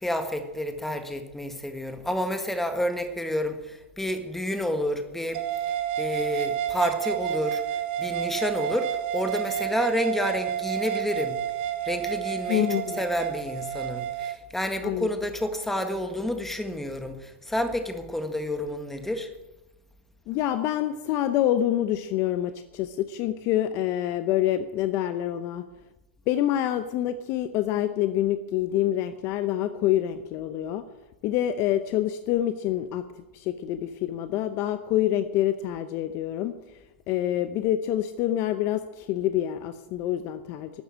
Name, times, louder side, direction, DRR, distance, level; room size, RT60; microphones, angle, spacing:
voice 1, 0.0-5.4 6.0-7.6 8.0-11.4 11.9-12.7 12.9-19.3, left 1 dB, 5° left, 7 dB, 1.8 m, -29 dB
sound 1, 5.3-14.4, right 11 dB, 55° right, 1.1 m, -30 dB
voice 2, 12.5-13.0 14.8-15.1 20.3-25.6 26.3-30.8 31.2-33.0 33.3-36.6 37.1-40.8, left 12 dB, 40° left, 11 dB, 0.8 m, -26 dB
12.5 x 9.2 x 8.7 m, 1.0 s
hypercardioid pair, 125°, 7 cm